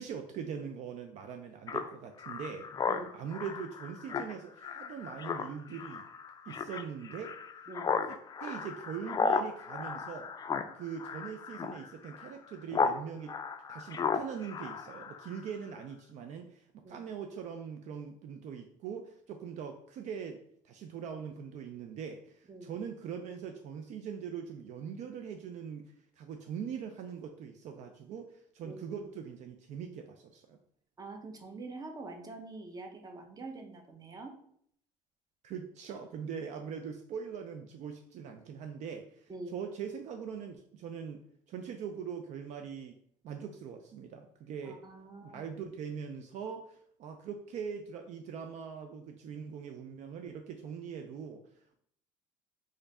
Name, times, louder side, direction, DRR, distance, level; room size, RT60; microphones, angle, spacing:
voice 1, 0.0-6.0 6.5-7.4 8.1-10.3 10.7-13.4 13.7-20.4 20.6-30.6 35.4-43.0 43.2-44.8 45.2-51.4, right 7 dB, 60° right, 6 dB, 0.4 m, -42 dB
Speech synthesizer, 1.7-13.0 13.3-15.5, left 5 dB, 30° left, 0.3 m, -35 dB
voice 2, 28.6-29.0 31.0-34.3 39.3-39.6 44.6-45.5, right 3 dB, 25° right, 4 dB, 0.8 m, -45 dB
3.1 x 2.5 x 4.0 m, 0.66 s
supercardioid pair, 85°, 14 cm